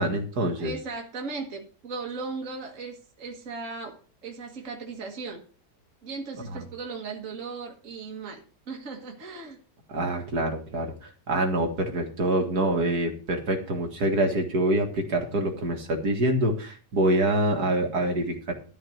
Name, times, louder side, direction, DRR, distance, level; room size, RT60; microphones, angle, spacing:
voice 1, 0.0-0.7 6.5-6.6 9.9-18.5, right 1 dB, 65° right, 2 dB, 2.3 m, -26 dB
voice 2, 0.6-4.0 4.2-5.4 6.0-8.4 8.7-9.6, right 4 dB, 50° right, 1 dB, 1.9 m, -37 dB
13.0 x 4.4 x 7.9 m, 0.39 s
omnidirectional pair, 1.8 m